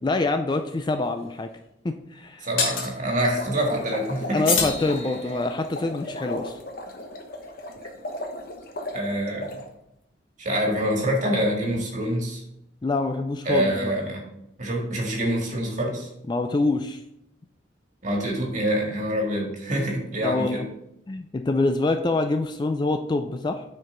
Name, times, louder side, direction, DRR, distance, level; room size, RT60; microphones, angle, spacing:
voice 1, 0.0-1.5 1.8-2.5 4.3-6.6 12.8-13.9 16.3-17.0 20.2-20.6 21.1-23.6, left 2 dB, 20° left, 7 dB, 0.3 m, -25 dB
sound 1, 0.6-0.7 2.6-2.9 4.4-5.5, left 4 dB, 90° left, 1.6 m, -26 dB
voice 2, 2.4-4.4 8.9-9.6 10.4-12.4 13.5-14.2 14.6-16.1 18.0-20.6, equal, 40° right, -1 dB, 1.8 m, -26 dB
sound 2, 3.2-9.7, left 1 dB, 50° left, 1.0 m, -36 dB
9.3 x 4.5 x 3.8 m, 0.82 s
head